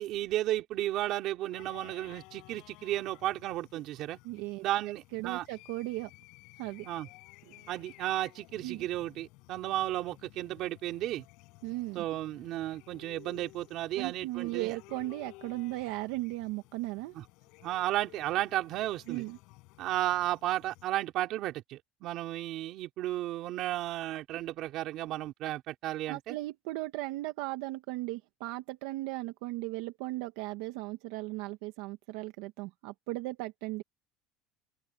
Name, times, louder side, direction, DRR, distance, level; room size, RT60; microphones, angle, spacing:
voice 1, 0.0-4.2 4.6-5.5 6.8-7.1 7.7-11.2 12.0-14.8 17.2-17.3 17.6-19.3 19.8-26.4, right 14 dB, 40° right, 3.5 m, -33 dB
sound 1, 1.5-20.9, left 24 dB, 55° left, 6.1 m, -55 dB
voice 2, 4.2-4.6 5.1-6.1 6.6-6.9 7.5-7.6 8.6-8.9 11.6-12.0 13.9-17.1 19.1-19.4 26.1-33.8, right 19 dB, 65° right, 1.3 m, -37 dB
open air
cardioid pair, 175°, 0 cm